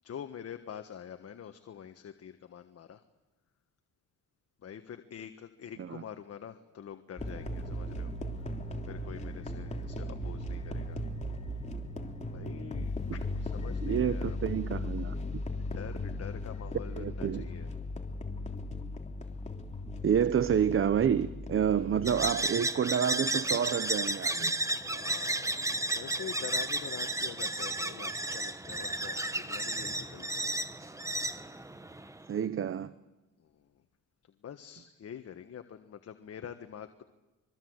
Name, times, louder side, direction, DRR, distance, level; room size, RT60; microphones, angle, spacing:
voice 1, 0.0-3.0 4.6-8.1 8.8-11.0 12.3-14.4 15.7-17.7 24.9-30.5 33.4-33.7 34.4-37.0, left 8 dB, 55° left, 1.5 m, -46 dB
sound 1, 7.2-22.3, left 1 dB, 25° left, 3.2 m, -37 dB
voice 2, 13.8-15.1 17.0-17.4 20.0-24.5 32.3-32.9, right 8 dB, 45° right, 0.9 m, -29 dB
sound 2, 22.1-32.3, right 1 dB, 10° right, 1.3 m, -33 dB
25.5 x 23.5 x 8.0 m
cardioid pair, 90°, 30 cm